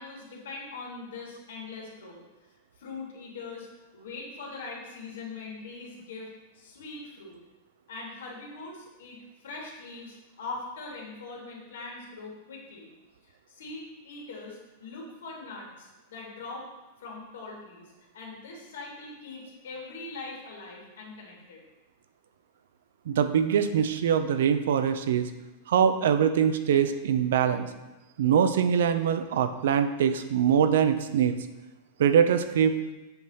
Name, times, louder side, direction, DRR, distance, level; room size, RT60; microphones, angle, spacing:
voice 1, 0.0-2.2 2.8-3.7 3.9-6.3 6.5-7.4 7.9-12.9 13.2-16.7 17.0-21.6, left 3 dB, 85° left, -2 dB, 2.3 m, -42 dB
voice 2, 23.1-25.3 25.7-27.7 28.2-31.3 32.0-32.8, right 8 dB, 80° right, 10 dB, 0.5 m, -23 dB
7.7 x 3.0 x 5.6 m, 1.1 s
supercardioid pair, 160°, 0 cm